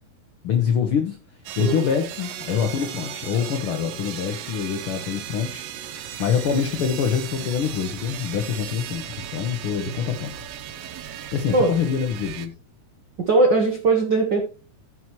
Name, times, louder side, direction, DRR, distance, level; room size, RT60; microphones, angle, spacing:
voice 1, 0.4-1.2 1.6-5.6 6.2-10.3 11.3-12.5, left 7 dB, 85° left, 6 dB, 1.1 m, -25 dB
sound 1, 1.5-12.5, right 10 dB, 85° right, 2.7 m, -36 dB
voice 2, 13.3-14.4, right 3 dB, 70° right, 2 dB, 1.0 m, -19 dB
15.5 x 6.0 x 3.1 m, 0.35 s
omnidirectional pair, 3.9 m